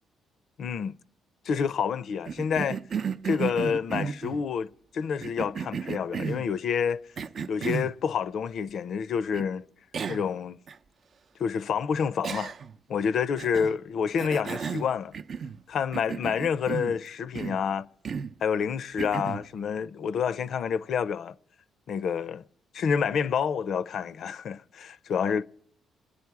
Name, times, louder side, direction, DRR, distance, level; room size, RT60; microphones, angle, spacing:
voice 1, 0.6-1.0 1.4-2.8 3.2-7.0 7.5-9.7 10.1-10.6 11.4-12.5 12.9-15.2 15.7-17.9 18.4-21.3 21.9-22.4 22.7-25.4, left 7 dB, 65° left, 0.6 m, -28 dB
Cough, 2.3-4.4 5.2-6.5 7.2-8.0 9.3-9.4 9.9-10.3 10.7-10.8 12.2-12.8 13.4-13.8 14.2-15.6 15.9-17.0 17.3-17.6 18.0-18.4 19.0-19.5, right 6 dB, 55° right, 0.5 m, -33 dB
28.0 x 9.8 x 4.7 m
cardioid pair, 90°, 0 cm